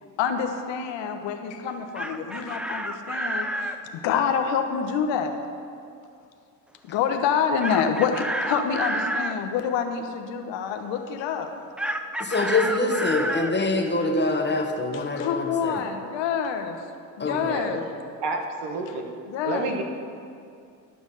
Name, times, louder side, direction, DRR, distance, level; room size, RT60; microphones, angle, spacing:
voice 1, 0.2-5.4 6.9-11.5 14.9-16.8 17.2-17.9 19.3-19.8, left 7 dB, 65° left, 6 dB, 1.1 m, -27 dB
Chicken rooster, 1.7-3.8 7.6-9.4 11.8-13.5, right 1 dB, ahead, 0.4 m, -29 dB
voice 2, 12.2-15.9 17.2-17.5, left 2 dB, 20° left, 4 dB, 1.3 m, -25 dB
voice 3, 17.3-17.8 18.2-19.1 19.4-19.8, right 3 dB, 60° right, 3 dB, 1.5 m, -29 dB
11.5 x 6.2 x 5.5 m, 2.4 s
hypercardioid pair, 65°, 47 cm